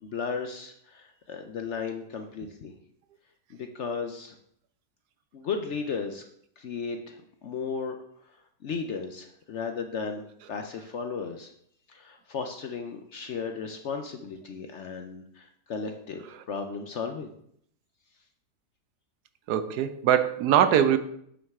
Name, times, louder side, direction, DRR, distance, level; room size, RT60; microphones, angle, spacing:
voice 1, 0.0-2.7 3.5-4.3 5.3-6.2 6.6-8.0 8.6-10.2 10.5-11.5 11.9-17.3, left 5 dB, 60° left, 0.8 m, -35 dB
voice 2, 19.5-21.0, right 9 dB, 75° right, 1.2 m, -22 dB
8.7 x 6.2 x 3.6 m
omnidirectional pair, 1.7 m